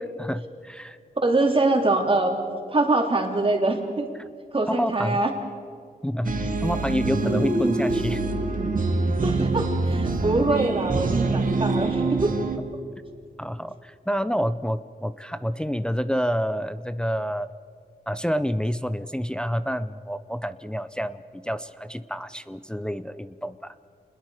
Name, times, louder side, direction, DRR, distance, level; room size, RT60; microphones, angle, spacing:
voice 1, 0.2-1.0 4.7-5.2 6.0-8.2 13.4-17.5 18.1-23.7, equal, 5° left, 12 dB, 0.6 m, -28 dB
voice 2, 1.2-2.3 2.7-4.1 4.5-5.3 9.2-12.3, right 2 dB, 35° right, 2 dB, 3.3 m, -23 dB
sound 1, 6.2-12.6, right 3 dB, 55° right, 1.9 m, -25 dB
28.0 x 21.0 x 4.9 m, 2.1 s
wide cardioid pair, 90°, 17 cm